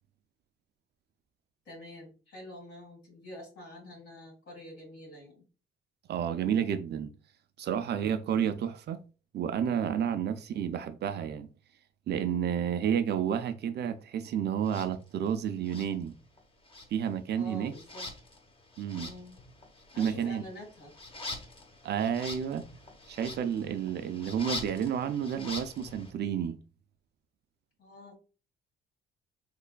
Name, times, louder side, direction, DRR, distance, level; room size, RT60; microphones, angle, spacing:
voice 1, 1.6-5.4 17.3-18.1 19.0-19.4 19.9-20.9 27.8-28.2, left 1 dB, 65° left, 1.5 m, -47 dB
voice 2, 6.1-7.1 7.6-9.0 9.3-11.5 12.1-16.1 16.9-17.7 18.8-19.1 20.0-20.4 21.8-22.6 23.1-26.6, right 8 dB, 55° right, 0.4 m, -30 dB
sound 1, 14.6-14.9 15.6-16.4 16.6-26.1, left 2 dB, 25° left, 0.8 m, -44 dB
3.6 x 3.3 x 2.2 m
cardioid pair, 90°, 20 cm